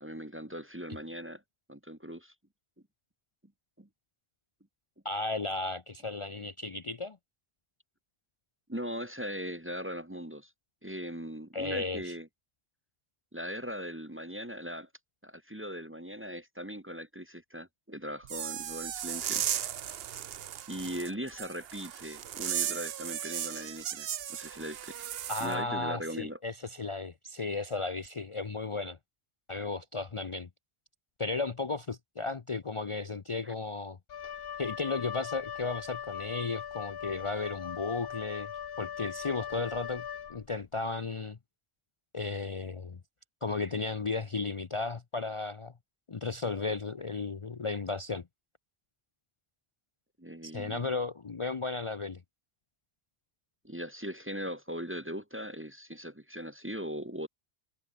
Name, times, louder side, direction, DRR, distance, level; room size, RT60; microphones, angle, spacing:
voice 1, 0.0-1.4 1.7-2.3 3.8-3.9 8.7-10.5 10.8-12.3 13.3-14.9 15.2-19.4 20.7-25.0 25.4-26.4 33.4-33.5 50.2-50.9 53.6-57.3, equal, 15° right, 1.0 m, -39 dB
voice 2, 5.0-7.2 11.5-12.1 25.3-29.0 29.5-30.5 31.2-34.0 34.6-38.5 38.8-41.4 42.1-43.0 43.4-45.7 46.1-48.3 50.4-52.2, left 3 dB, 35° left, 0.7 m, -34 dB
sound 1, 18.2-25.6, right 10 dB, 75° right, 0.9 m, -36 dB
Wind instrument woodwind instrument, 34.1-40.7, left 8 dB, 70° left, 1.1 m, -40 dB
omnidirectional pair, 1.0 m